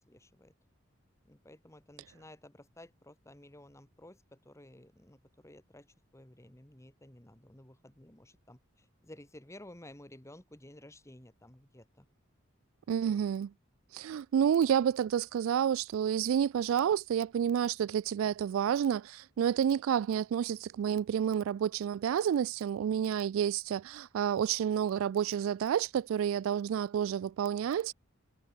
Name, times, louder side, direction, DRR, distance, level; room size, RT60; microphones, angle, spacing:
voice 1, 0.1-0.5 1.3-5.9 6.1-12.1, left 1 dB, 15° left, 2.5 m, -54 dB
voice 2, 12.9-13.5 13.9-27.9, right 8 dB, 80° right, 0.3 m, -29 dB
head